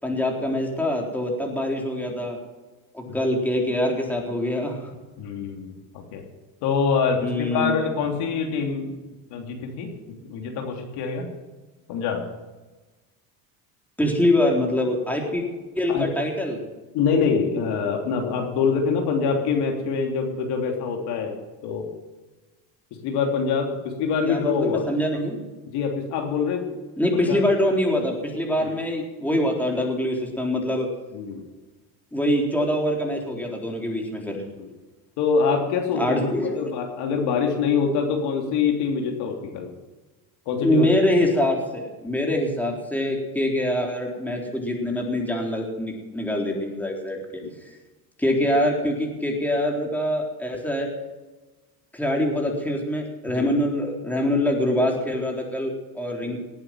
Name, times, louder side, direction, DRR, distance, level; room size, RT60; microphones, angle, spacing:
voice 1, 0.0-2.4 2.9-4.8 7.2-7.7 14.0-15.4 15.8-16.6 24.3-25.4 27.0-30.9 32.1-34.4 35.9-36.7 40.6-47.2 48.2-50.9 51.9-56.4, left 1 dB, 5° left, 0 dB, 4.0 m, -24 dB
voice 2, 5.2-6.2 6.6-8.9 9.3-9.9 10.2-11.3 11.9-12.2 15.9-16.1 16.9-21.4 21.6-21.9 23.0-24.9 25.7-26.8 27.3-27.4 28.6-28.7 31.1-31.4 34.5-34.7 35.2-39.7 40.5-40.9 42.2-42.3 47.4-47.5 53.3-53.5 56.2-56.4, left 5 dB, 70° left, 2 dB, 3.2 m, -25 dB
18.5 x 8.8 x 7.6 m, 1.2 s
supercardioid pair, 100°, 41 cm